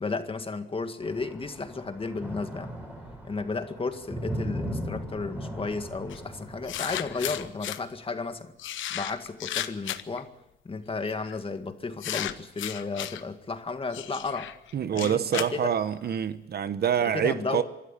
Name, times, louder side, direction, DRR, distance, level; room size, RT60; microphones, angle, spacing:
voice 1, 0.0-2.7 3.2-8.5 8.9-10.3 10.6-14.5 14.9-15.7 17.0-17.6, left 4 dB, 25° left, 1.9 m, -33 dB
sound 1, 1.0-7.5, equal, 5° right, 5.6 m, -38 dB
sound 2, 6.1-6.2 6.7-7.8 8.6-10.2 11.0-11.3 12.0-13.2 13.9-16.2, left 12 dB, 75° left, 1.0 m, -34 dB
voice 2, 14.7-17.6, right 8 dB, 55° right, 1.0 m, -26 dB
24.5 x 13.0 x 8.4 m
cardioid pair, 90°, 20 cm